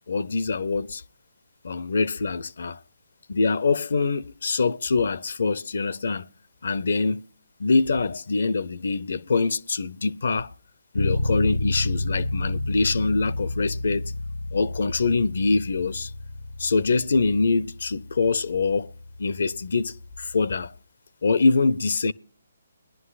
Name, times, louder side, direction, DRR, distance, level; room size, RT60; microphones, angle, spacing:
voice 1, 0.1-1.0 1.6-2.8 3.3-6.3 6.6-7.2 7.6-10.5 10.9-14.1 14.5-16.1 16.6-18.9 19.2-20.7 21.2-22.1, left 4 dB, 60° left, 0.5 m, -24 dB
Bass guitar, 10.9-20.7, left 2 dB, 90° left, 1.1 m, -31 dB
21.5 x 11.0 x 2.4 m
figure-of-eight pair, 140°, 0 cm